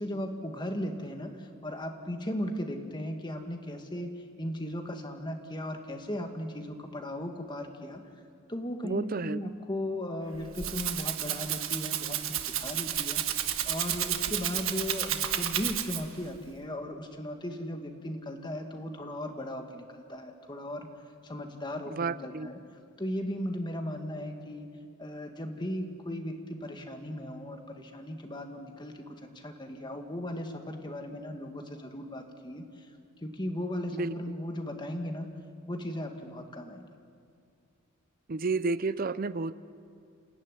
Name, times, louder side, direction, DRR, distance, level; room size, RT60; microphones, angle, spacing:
voice 1, 0.0-8.0 8.5-20.9 21.2-22.6 23.0-24.7 25.0-32.6 33.2-35.3 35.7-36.8, left 1 dB, 20° left, 4 dB, 1.9 m, -37 dB
voice 2, 8.8-9.4 21.9-22.5 33.9-34.1 38.3-39.5, right 3 dB, 40° right, 16 dB, 0.6 m, -31 dB
Rattle (instrument), 10.3-16.2, right 11 dB, 70° right, 1.5 m, -32 dB
27.5 x 16.5 x 9.9 m, 2.3 s
head